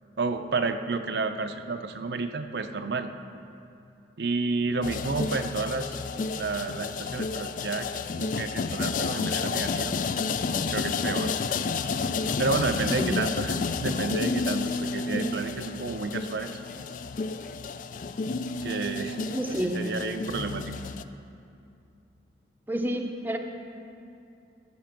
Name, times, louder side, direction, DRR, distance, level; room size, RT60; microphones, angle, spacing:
voice 1, 0.2-3.1 4.2-6.0 6.3-7.9 8.2-9.9 10.7-11.3 12.4-16.6 18.6-19.2 19.6-20.8, right 3 dB, 70° right, 7 dB, 0.6 m, -30 dB
sound 1, 4.8-21.0, left 4 dB, 45° left, 0.3 m, -31 dB
voice 2, 12.9-13.3 15.0-15.1 19.3-19.9 22.7-23.4, right 1 dB, 10° right, 3 dB, 0.6 m, -30 dB
15.0 x 6.7 x 6.0 m, 2.6 s
head